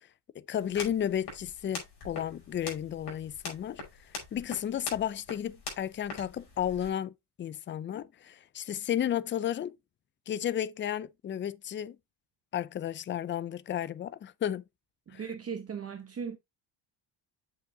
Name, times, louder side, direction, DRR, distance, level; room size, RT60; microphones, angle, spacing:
voice 1, 0.4-3.8 4.3-7.1 7.4-9.8 10.3-12.0 12.5-14.6 15.1-15.2, left 10 dB, 30° left, 0.3 m, -33 dB
sound 1, 0.6-6.9, left 3 dB, 55° left, 5.1 m, -44 dB
voice 2, 15.1-16.4, right 6 dB, 30° right, 1.0 m, -37 dB
8.0 x 6.8 x 2.7 m
cardioid pair, 130°, 45 cm